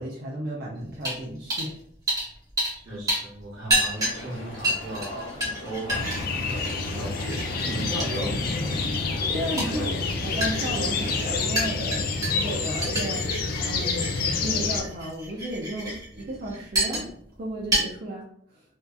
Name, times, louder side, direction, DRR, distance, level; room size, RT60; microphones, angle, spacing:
voice 1, 0.0-1.8 9.3-9.9 10.2-12.1 12.4-13.4 13.6-17.1 17.4-18.6, right 1 dB, 50° right, -4 dB, 0.4 m, -34 dB
sound 1, 1.0-1.2 1.5-1.7 2.1-2.8 3.1-17.3 17.6-17.8, right 1 dB, 20° right, 0.8 m, -30 dB
voice 2, 2.8-8.8 9.6-10.0, right 1 dB, 70° right, -6 dB, 0.9 m, -36 dB
sound 2, 4.0-11.4, left 1 dB, 80° left, 0.7 m, -40 dB
sound 3, 5.9-14.8, left 4 dB, 50° left, 0.3 m, -28 dB
2.7 x 2.3 x 2.3 m, 0.63 s
head